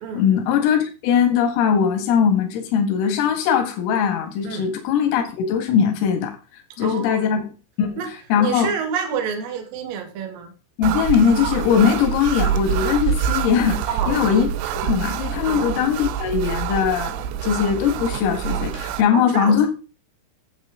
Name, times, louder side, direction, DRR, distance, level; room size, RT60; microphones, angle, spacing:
voice 1, 0.1-6.3 6.8-7.5 7.8-8.0 8.3-8.7 10.8-13.8 14.1-19.7, left 7 dB, 85° left, 3 dB, 4.4 m, -20 dB
voice 2, 6.8-7.3 8.0-8.1 8.4-10.5 13.9-14.4 15.4-15.7 19.1-19.7, right 7 dB, 55° right, 4 dB, 3.2 m, -28 dB
sound 1, 10.8-19.0, right 9 dB, 90° right, 2.4 m, -26 dB
12.5 x 8.0 x 3.7 m, 0.34 s
omnidirectional pair, 5.8 m